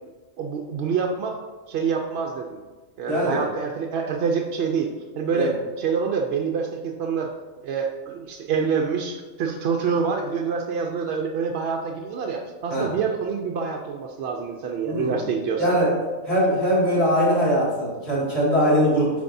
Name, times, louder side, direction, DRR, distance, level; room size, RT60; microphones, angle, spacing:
voice 1, 0.4-1.4 1.7-2.6 3.0-4.9 5.2-7.3 7.6-15.8, right 5 dB, 65° right, 2 dB, 0.6 m, -26 dB
voice 2, 3.1-3.4 5.3-5.5 12.7-12.9 14.8-15.2 15.6-15.9 16.2-19.1, equal, 45° left, -7 dB, 2.5 m, -21 dB
8.1 x 5.2 x 2.6 m, 1.2 s
omnidirectional pair, 1.5 m